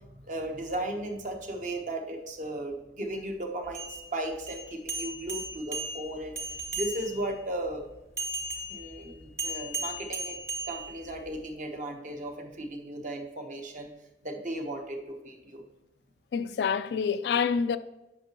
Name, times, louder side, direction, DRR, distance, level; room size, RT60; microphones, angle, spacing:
voice 1, 0.3-6.4 6.7-7.8 8.7-10.4 10.7-13.9 14.2-15.6, right 1 dB, 45° right, 1.0 m, -36 dB
sound 1, 3.6-7.3 8.2-11.4, right 2 dB, 15° right, 1.0 m, -36 dB
voice 2, 16.3-17.8, left 6 dB, 70° left, 0.3 m, -27 dB
8.8 x 5.8 x 2.9 m
head